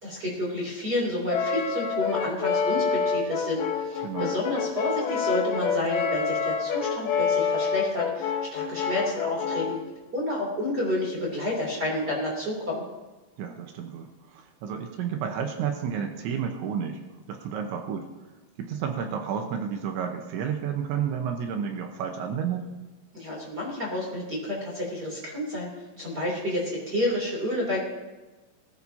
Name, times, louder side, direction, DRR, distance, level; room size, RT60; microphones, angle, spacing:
voice 1, 0.0-9.8 10.1-12.8 23.1-25.7 26.0-27.9, left 1 dB, 25° right, -4 dB, 2.9 m, -30 dB
Brass instrument, 1.3-9.9, left 6 dB, 90° left, 1.9 m, -27 dB
voice 2, 4.0-4.3 13.4-17.0 17.3-18.1 18.6-22.7, right 7 dB, 75° right, 4 dB, 3.3 m, -31 dB
20.5 x 13.5 x 2.9 m, 1.2 s
omnidirectional pair, 5.5 m